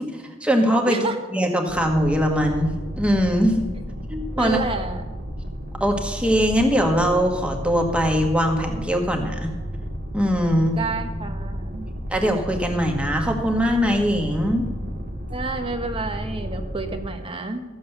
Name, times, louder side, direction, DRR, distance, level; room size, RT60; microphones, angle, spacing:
voice 1, 0.0-1.0 1.3-2.7 3.0-3.6 4.1-4.6 5.8-9.5 10.1-10.8 12.1-14.6, equal, 5° right, 2 dB, 1.5 m, -21 dB
voice 2, 0.9-1.2 4.4-5.0 10.8-11.9 15.3-17.6, right 3 dB, 30° right, 6 dB, 1.1 m, -29 dB
sound 1, 1.7-17.0, equal, 55° right, 2.0 m, -32 dB
14.0 x 7.8 x 6.7 m, 1.2 s
head